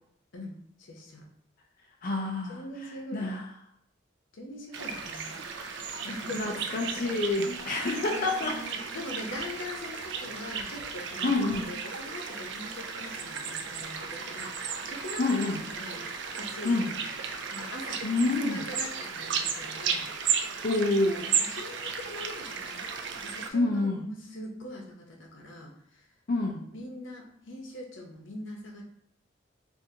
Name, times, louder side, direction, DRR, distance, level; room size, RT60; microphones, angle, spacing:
voice 1, 0.9-1.2 2.5-3.4 4.4-5.3 6.0-7.0 8.0-11.3 11.7-16.0 16.3-17.0 17.5-18.0 18.4-20.1 20.4-20.5 21.0-22.8 23.1-25.7 26.4-28.8, left 1 dB, 85° left, 0 dB, 0.8 m, -42 dB
voice 2, 2.0-3.5 6.0-6.1 6.3-8.6 9.8-9.9 11.2-11.7 15.2-15.6 16.6-16.9 18.0-18.7 20.6-21.3 23.5-24.1 26.3-26.6, left 2 dB, 45° left, 0 dB, 0.5 m, -28 dB
sound 1, 4.7-23.5, right 6 dB, 65° right, 0.4 m, -34 dB
3.8 x 2.5 x 2.7 m, 0.69 s
head